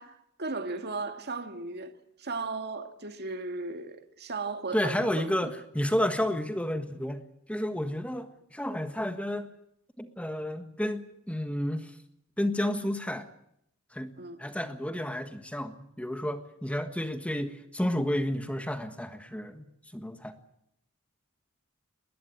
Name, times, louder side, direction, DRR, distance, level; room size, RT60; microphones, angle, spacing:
voice 1, 0.0-5.3 14.2-14.4, right 3 dB, 50° right, 2.1 m, -36 dB
voice 2, 4.7-7.2 7.5-9.5 10.0-11.9 12.4-13.3 13.9-14.1 14.4-19.7 19.9-20.3, left 1 dB, 5° left, 1.4 m, -31 dB
21.0 x 20.0 x 9.4 m
head